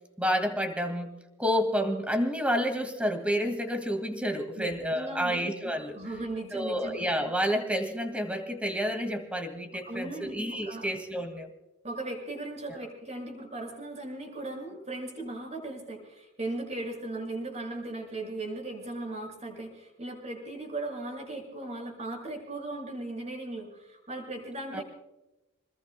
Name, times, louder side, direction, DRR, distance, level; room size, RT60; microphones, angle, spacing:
voice 1, 0.2-1.1 1.4-6.0 6.5-11.5 24.7-24.8, equal, 5° right, 7 dB, 2.0 m, -29 dB
voice 2, 4.5-5.4 5.6-7.0 9.8-10.9 11.8-24.8, right 2 dB, 35° right, 1 dB, 6.5 m, -37 dB
28.5 x 21.0 x 2.2 m, 0.98 s
head